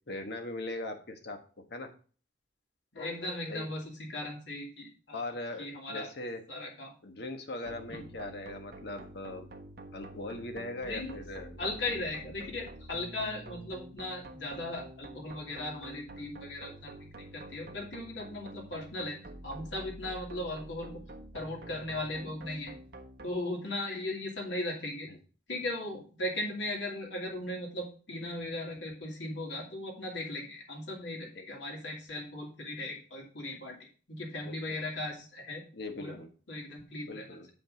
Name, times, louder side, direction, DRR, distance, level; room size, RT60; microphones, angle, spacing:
voice 1, 0.1-1.9 3.5-3.7 5.1-6.4 7.0-9.5 9.9-11.8 31.3-31.4 34.4-34.6 35.7-36.3 37.0-37.5, left 2 dB, 65° left, 6 dB, 1.3 m, -40 dB
voice 2, 2.9-5.2 5.6-6.1 6.5-6.9 7.9-8.0 10.9-11.2 11.6-19.2 19.4-20.9 21.3-22.7 23.2-25.1 25.5-33.8 34.1-35.6 36.0-36.2 36.5-37.3, left 1 dB, 80° left, -1 dB, 2.5 m, -37 dB
sound 1, 7.7-23.3, right 1 dB, 60° right, 1.2 m, -48 dB
7.7 x 5.2 x 5.1 m, 0.40 s
head